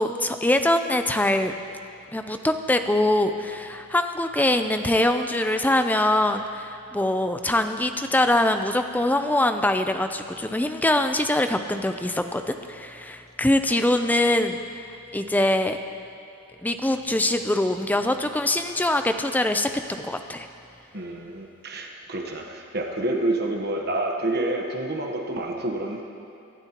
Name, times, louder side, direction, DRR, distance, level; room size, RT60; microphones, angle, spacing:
voice 1, 0.0-1.5 2.1-14.6 15.1-15.8 16.6-20.5, left 1 dB, 10° left, 7 dB, 0.5 m, -23 dB
voice 2, 20.9-26.0, right 2 dB, 45° right, 2 dB, 1.1 m, -28 dB
24.0 x 12.0 x 3.0 m, 2.7 s
head